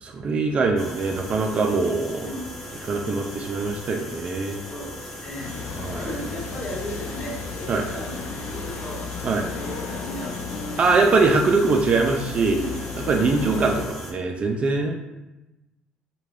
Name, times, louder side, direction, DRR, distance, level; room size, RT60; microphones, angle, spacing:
voice 1, 0.0-2.3 2.8-4.6 5.8-6.1 7.7-7.9 9.2-9.5 10.8-12.6 13.1-14.9, right 3 dB, 40° right, 3 dB, 0.4 m, -22 dB
sound 1, 0.8-14.1, left 1 dB, 10° left, 0.7 m, -39 dB
voice 2, 2.2-2.6 4.5-5.6 6.0-11.1 12.5-13.4, equal, 35° left, -4 dB, 0.9 m, -36 dB
sound 2, 5.4-13.9, left 6 dB, 75° left, 0.3 m, -35 dB
2.4 x 2.2 x 3.3 m, 1.0 s
cardioid pair, 95°, 3 cm